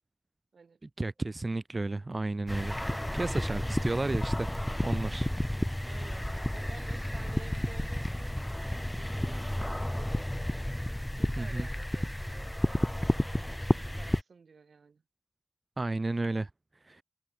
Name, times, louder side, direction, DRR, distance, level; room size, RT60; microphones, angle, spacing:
voice 1, 1.0-2.8 3.1-4.5 4.8-5.3 11.4-11.7 15.8-16.5 16.9-17.0, right 2 dB, 40° right, 1.3 m, -32 dB
sound 1, 2.5-14.2, left 1 dB, 10° left, 0.6 m, -31 dB
sound 2, 5.0-10.0, right 1 dB, 25° right, 7.9 m, -53 dB
voice 2, 5.8-10.5 11.1-15.0, right 5 dB, 85° right, 2.6 m, -53 dB
cardioid pair, 55°, 0 cm